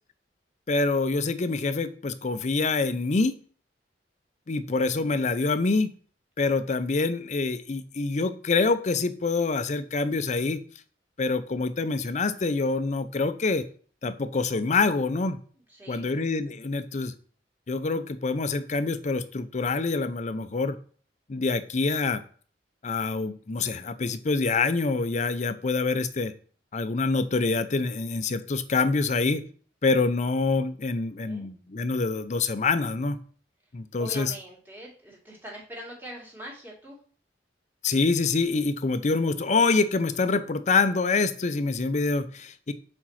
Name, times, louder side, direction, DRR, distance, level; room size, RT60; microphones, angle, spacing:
voice 1, 0.7-3.4 4.5-5.9 6.4-10.6 11.2-13.7 14.0-15.4 15.9-17.1 17.7-20.8 21.3-22.2 22.8-26.3 26.7-29.4 29.8-33.2 33.7-34.3 37.8-42.7, left 3 dB, 40° left, 12 dB, 0.6 m, -26 dB
voice 2, 15.5-16.3 31.2-31.5 33.9-37.0, equal, 10° right, -3 dB, 2.3 m, -43 dB
4.8 x 4.4 x 5.7 m, 0.44 s
head